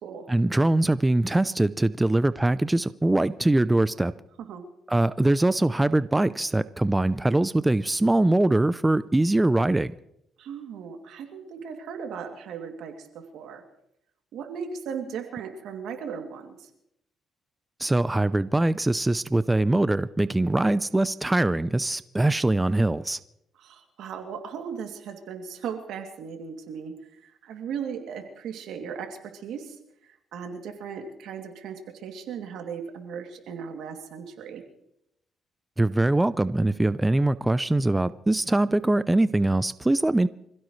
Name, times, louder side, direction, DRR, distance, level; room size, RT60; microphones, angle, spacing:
voice 1, 0.3-4.1 4.9-9.9 17.8-23.2 35.8-40.3, right 2 dB, 15° right, 0.5 m, -22 dB
voice 2, 10.4-13.6 14.3-16.7 23.6-26.9 27.2-29.8 30.0-34.6, right 7 dB, 80° right, 2.7 m, -37 dB
26.5 x 16.0 x 3.2 m
cardioid pair, 90°, 0 cm